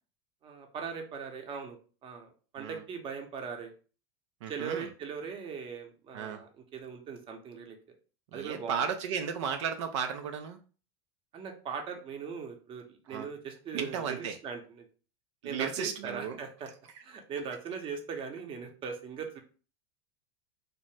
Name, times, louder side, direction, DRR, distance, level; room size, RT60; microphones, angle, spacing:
voice 1, 0.4-1.8 2.0-3.7 4.5-7.8 8.3-8.8 11.3-14.9 15.4-16.7 17.0-19.4, right 6 dB, 35° right, 4 dB, 0.7 m, -39 dB
voice 2, 4.4-4.9 6.1-6.4 8.3-10.6 13.1-13.3 13.7-14.4 15.4-16.4, right 7 dB, 85° right, 6 dB, 0.4 m, -34 dB
2.7 x 2.1 x 3.2 m, 0.37 s
supercardioid pair, 110°, 15 cm